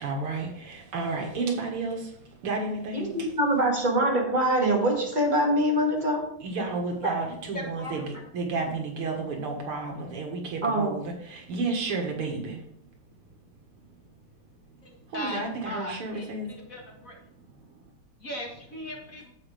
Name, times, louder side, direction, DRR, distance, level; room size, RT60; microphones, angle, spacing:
voice 1, 0.0-2.0 2.4-3.3 6.4-12.6 15.1-16.5, right 3 dB, 80° right, 2 dB, 2.4 m, -31 dB
voice 2, 2.9-6.2 7.0-7.2 10.6-11.0, right 1 dB, 20° right, -2 dB, 2.2 m, -24 dB
voice 3, 7.5-8.1 14.8-17.1 18.2-19.3, left 1 dB, 40° left, 0 dB, 1.8 m, -38 dB
9.8 x 7.7 x 3.3 m, 0.68 s
omnidirectional pair, 2.4 m